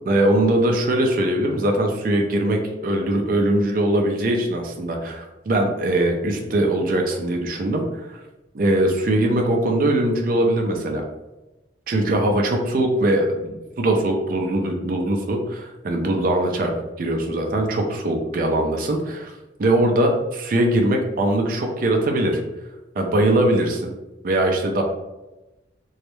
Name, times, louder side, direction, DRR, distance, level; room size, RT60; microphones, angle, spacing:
voice 1, 0.1-7.8 8.1-8.2 8.5-11.0 11.9-16.7 17.0-19.3 19.6-22.4 23.0-23.9 24.2-24.8, right 1 dB, 45° right, 2 dB, 0.4 m, -21 dB
2.2 x 2.0 x 2.9 m, 1.0 s
head